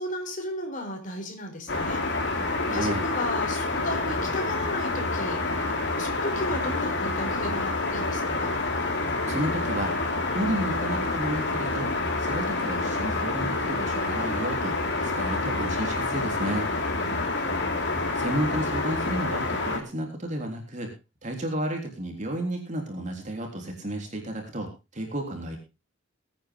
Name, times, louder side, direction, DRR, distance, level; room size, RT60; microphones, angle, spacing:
voice 1, 0.0-2.4 2.7-5.6 6.0-8.5 16.6-17.6, left 1 dB, 40° left, 4 dB, 4.2 m, -35 dB
sound 1, 1.7-19.8, left 2 dB, 60° left, 3.2 m, -28 dB
voice 2, 2.6-3.0 9.3-9.9 10.3-11.9 12.2-14.8 15.0-16.7 18.2-20.9 21.2-25.6, right 1 dB, 40° right, 2 dB, 3.5 m, -32 dB
21.5 x 9.2 x 3.7 m, 0.29 s
head